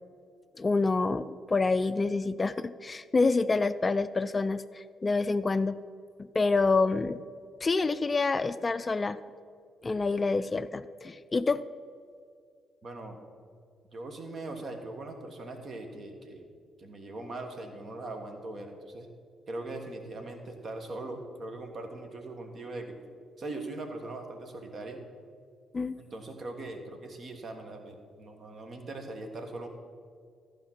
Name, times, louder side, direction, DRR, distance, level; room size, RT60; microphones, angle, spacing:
voice 1, 0.6-5.8 6.3-7.2 7.6-9.2 9.8-11.6 25.7-25.9, left 3 dB, 30° left, 13 dB, 0.3 m, -27 dB
voice 2, 12.8-13.2 13.9-16.5 16.8-19.1 19.5-23.0 23.4-25.0 26.0-29.7, right 2 dB, 50° right, 5 dB, 1.3 m, -40 dB
14.0 x 5.1 x 5.8 m, 2.1 s
figure-of-eight pair, 40°, 0 cm